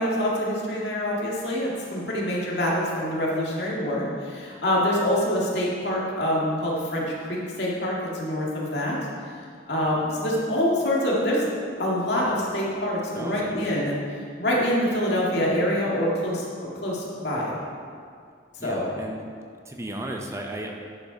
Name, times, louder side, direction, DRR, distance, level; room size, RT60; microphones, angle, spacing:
voice 1, 0.0-9.0 9.7-11.4 11.8-13.9 14.4-17.5 18.6-18.9, equal, 70° left, -4 dB, 2.0 m, -25 dB
voice 2, 13.1-13.7 18.6-19.2 19.6-20.7, right 1 dB, 15° right, 1 dB, 0.6 m, -35 dB
10.5 x 5.5 x 5.2 m, 2.2 s
head